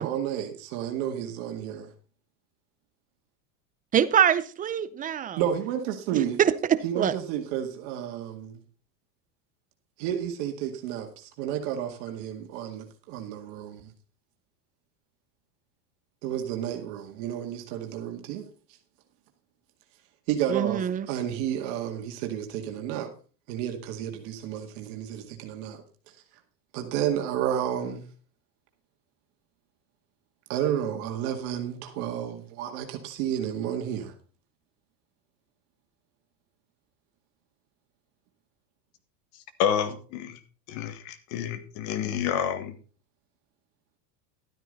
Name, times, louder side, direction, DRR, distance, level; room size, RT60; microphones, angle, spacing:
voice 1, 0.0-1.9 5.4-6.4 6.8-8.6 10.0-13.9 16.2-18.4 20.3-20.8 21.1-23.1 23.5-25.8 26.7-28.0 30.5-34.1, right 10 dB, 60° right, 2.1 m, -31 dB
voice 2, 3.9-5.4 6.1-7.1 20.5-21.1, right 9 dB, 15° right, 0.5 m, -24 dB
voice 3, 39.6-40.4 40.7-42.7, left 9 dB, 55° left, 1.9 m, -29 dB
12.5 x 9.1 x 4.0 m
supercardioid pair, 125°, 50 cm